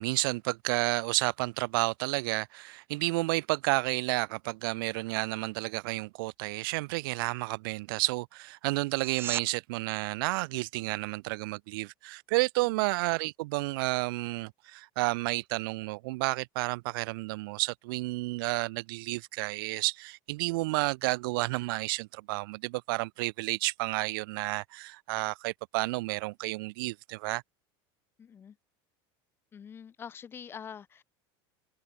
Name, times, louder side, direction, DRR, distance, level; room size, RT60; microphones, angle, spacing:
voice 1, 0.0-27.4, right 23 dB, 70° right, 1.2 m, -31 dB
sound 1, 8.9-9.5 20.8-20.9, right 8 dB, 20° right, 0.9 m, -36 dB
voice 2, 28.2-28.5 29.5-31.0, left 7 dB, 20° left, 3.4 m, -45 dB
cardioid pair, 175°, 12 cm